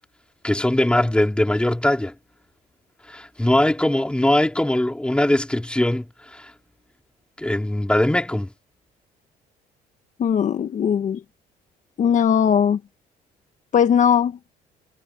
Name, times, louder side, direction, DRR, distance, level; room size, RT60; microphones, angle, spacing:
voice 1, 0.4-2.1 3.1-6.0 6.3-6.5 7.4-8.5, left 1 dB, 5° left, 3.1 m, -21 dB
voice 2, 10.2-11.2 12.0-12.8 13.7-14.4, left 8 dB, 50° left, 1.4 m, -19 dB
cardioid pair, 110°, 17 cm